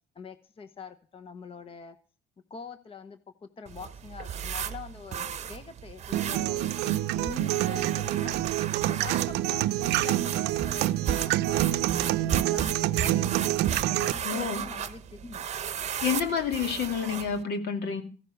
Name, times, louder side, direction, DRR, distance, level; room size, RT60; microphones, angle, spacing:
voice 1, 0.1-2.0 2.5-8.4 8.8-13.4 13.9-15.4, left 5 dB, 35° left, 10 dB, 1.0 m, -44 dB
sound 1, 3.7-17.4, right 8 dB, 40° right, 0.8 m, -35 dB
sound 2, 6.1-14.1, right 15 dB, 85° right, 0.6 m, -27 dB
voice 2, 14.2-14.7 16.0-18.0, left 6 dB, 70° left, 6 dB, 2.4 m, -29 dB
15.0 x 10.5 x 6.4 m, 0.40 s
cardioid pair, 110°, 17 cm